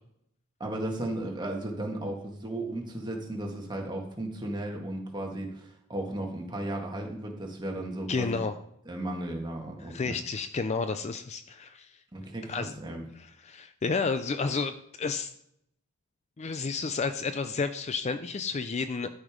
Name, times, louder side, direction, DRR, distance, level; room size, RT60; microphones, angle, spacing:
voice 1, 0.6-8.4 8.8-10.2 12.1-13.1, right 1 dB, 20° right, 1 dB, 1.7 m, -35 dB
voice 2, 8.1-8.5 9.9-11.9 12.5-12.7 13.2-15.3 16.4-19.1, left 4 dB, 30° left, 10 dB, 0.4 m, -31 dB
12.5 x 5.1 x 5.1 m, 0.75 s
head